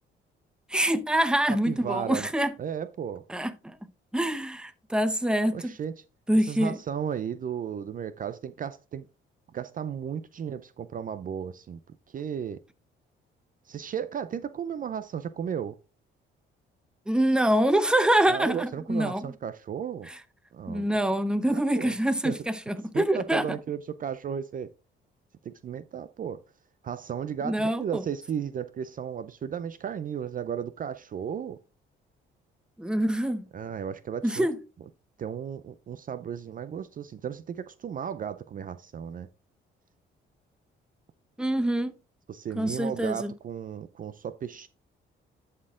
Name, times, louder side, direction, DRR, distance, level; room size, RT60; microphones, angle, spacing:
voice 1, 0.7-2.5 3.3-3.8 4.1-5.7 6.3-6.8 17.1-19.3 20.1-20.2 20.7-23.5 27.4-28.0 32.8-33.4 34.2-34.6 41.4-41.9 42.6-43.3, right 1 dB, 5° right, 0.8 m, -25 dB
voice 2, 1.5-2.3 2.6-3.2 5.5-5.9 6.4-9.1 9.5-11.8 12.1-12.6 13.7-15.8 18.3-20.1 20.5-20.9 21.5-22.0 22.2-22.3 22.9-24.7 25.4-26.4 26.8-31.6 33.5-34.5 35.2-39.3 42.3-44.7, right 8 dB, 45° right, 0.5 m, -34 dB
11.0 x 4.4 x 3.7 m
cardioid pair, 90°, 20 cm